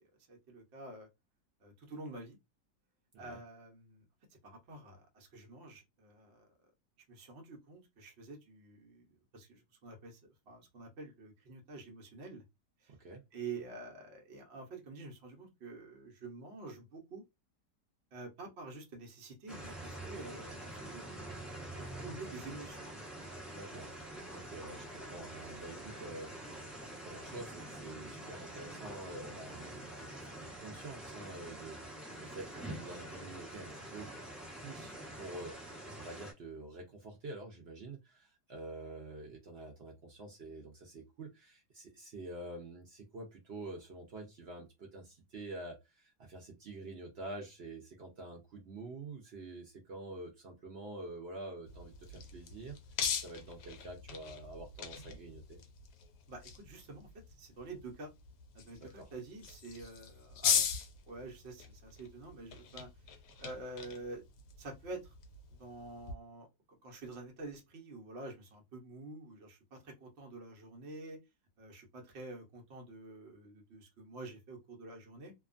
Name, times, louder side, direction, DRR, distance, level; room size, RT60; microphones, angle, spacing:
voice 1, 0.3-1.1 1.6-2.4 3.2-4.0 4.4-6.5 7.1-10.2 10.5-12.4 12.8-12.9 13.3-17.2 18.1-22.9 56.3-58.1 58.5-60.7 61.1-62.9 63.4-64.2 64.6-65.1 65.6-71.2 71.6-75.3, right 3 dB, 50° right, 0.9 m, -48 dB
voice 2, 12.9-13.2 23.5-23.9 24.3-26.5 27.0-34.1 34.6-52.8 53.2-55.6 58.8-59.1, right 2 dB, 80° right, 0.5 m, -47 dB
sound 1, 19.5-36.3, right 1 dB, ahead, 0.5 m, -46 dB
sound 2, 51.7-66.1, left 7 dB, 70° left, 1.1 m, -40 dB
2.8 x 2.3 x 2.4 m
omnidirectional pair, 1.9 m